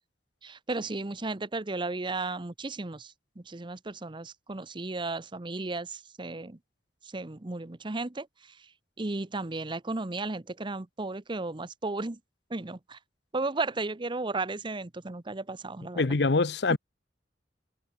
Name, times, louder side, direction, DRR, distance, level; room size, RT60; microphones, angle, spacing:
voice 1, 0.4-6.6 7.1-8.3 9.0-12.2 12.5-13.0 13.3-16.0 16.7-16.8, right 3 dB, 25° right, 0.8 m, -34 dB
voice 2, 16.0-16.8, left 3 dB, 70° left, 0.8 m, -24 dB
head